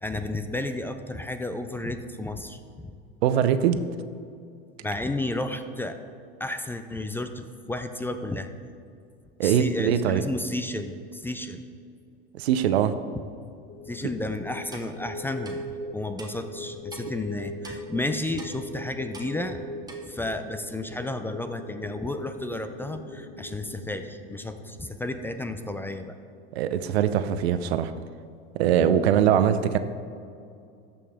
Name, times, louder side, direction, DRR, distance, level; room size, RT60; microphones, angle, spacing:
voice 1, 0.0-2.9 4.8-6.0 6.4-8.5 9.4-11.6 13.9-15.6 15.9-19.6 20.1-26.2, left 2 dB, 5° left, 8 dB, 0.4 m, -32 dB
voice 2, 3.2-3.8 9.4-10.2 12.3-12.9 26.5-27.9 28.5-29.8, right 9 dB, 80° right, 11 dB, 0.6 m, -22 dB
sound 1, 13.7-25.9, left 1 dB, 40° left, 1.4 m, -41 dB
Clock, 14.7-14.9 15.4-15.5 16.2-16.3 16.9-17.0 17.6-17.8 18.4-18.5 19.1-19.3 19.9-20.0, right 3 dB, 10° right, 1.3 m, -43 dB
14.0 x 5.5 x 3.6 m, 2.5 s
hypercardioid pair, 100°, 31 cm